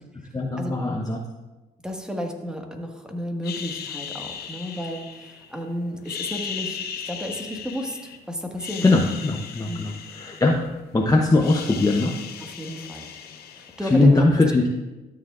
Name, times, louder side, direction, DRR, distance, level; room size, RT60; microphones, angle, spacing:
voice 1, 0.3-1.2 8.8-10.6 10.9-12.1 13.8-14.7, left 2 dB, 20° left, 0 dB, 0.9 m, -20 dB
voice 2, 1.8-6.8 7.0-9.0 9.7-9.9 12.4-13.1 13.6-14.3, equal, 5° right, 2 dB, 1.6 m, -33 dB
sound 1, 3.4-5.6 6.0-8.2 8.5-10.9 11.2-14.1, left 7 dB, 70° left, 0.8 m, -37 dB
13.0 x 7.0 x 2.5 m, 1.1 s
supercardioid pair, 55°, 17 cm